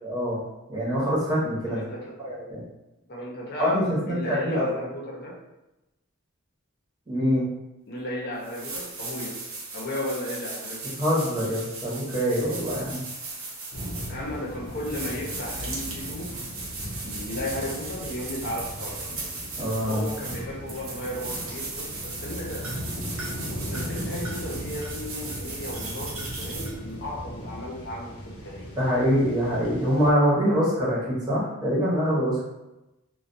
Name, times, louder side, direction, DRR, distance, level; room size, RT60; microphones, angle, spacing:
voice 1, 0.0-0.4 0.7-1.8 2.2-2.6 3.6-4.7 7.1-7.5 11.0-13.0 19.6-20.1 28.8-32.4, equal, 20° right, -8 dB, 0.8 m, -24 dB
voice 2, 1.7-2.1 3.1-5.4 7.9-9.4 9.7-10.9 14.1-16.3 17.0-19.1 19.8-21.8 22.2-22.6 23.7-28.1 28.4-28.8, left 1 dB, 50° left, -4 dB, 0.7 m, -35 dB
sound 1, 7.9-8.0 8.4-27.1, right 3 dB, 70° right, 0.6 m, -37 dB
sound 2, 13.7-30.1, equal, 90° left, 0.6 m, -38 dB
2.3 x 2.2 x 2.5 m, 0.96 s
head